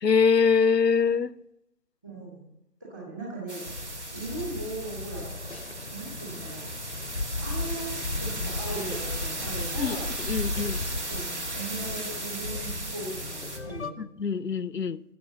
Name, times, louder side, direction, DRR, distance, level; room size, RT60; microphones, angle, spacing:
voice 1, 0.0-1.3 9.8-10.0 10.3-10.8 14.0-15.0, left 6 dB, 75° left, 0.7 m, -23 dB
voice 2, 2.0-2.4 2.8-3.6 4.1-5.2 5.9-6.7 7.4-10.1 11.1-11.2 11.5-14.0, right 2 dB, 10° right, 2.4 m, -38 dB
sound 1, 3.5-13.6, right 2 dB, 45° right, 1.9 m, -37 dB
sound 2, 3.7-13.9, left 3 dB, 45° left, 0.8 m, -36 dB
15.5 x 7.2 x 7.3 m
figure-of-eight pair, 160°, 49 cm